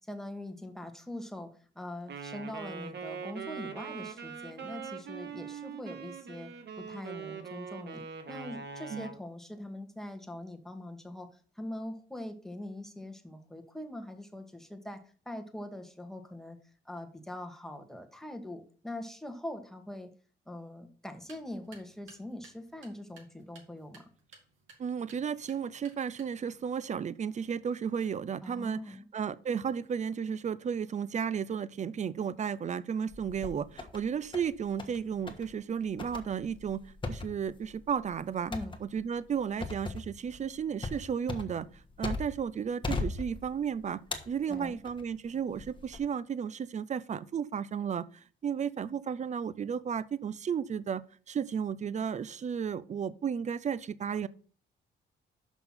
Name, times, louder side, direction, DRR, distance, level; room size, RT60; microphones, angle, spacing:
voice 1, 0.1-6.5 6.8-11.3 11.5-16.6 16.8-20.1 20.5-24.1 28.4-29.1 38.5-38.8 44.5-44.8, left 1 dB, ahead, 1.4 m, -42 dB
Wind instrument woodwind instrument, 2.1-9.2, right 6 dB, 60° right, 1.4 m, -42 dB
sound 1, 21.1-26.6, right 4 dB, 80° right, 2.8 m, -59 dB
voice 2, 24.8-36.8 37.1-38.5 38.8-41.7 42.0-44.0 44.3-54.3, right 7 dB, 35° right, 0.5 m, -33 dB
sound 2, 33.1-34.0 34.3-35.0 35.3-35.5 36.0-42.5 42.8-43.7 44.1-45.0 45.6-46.0, left 3 dB, 25° left, 1.4 m, -38 dB
6.1 x 5.7 x 5.6 m
cardioid pair, 90°, 20 cm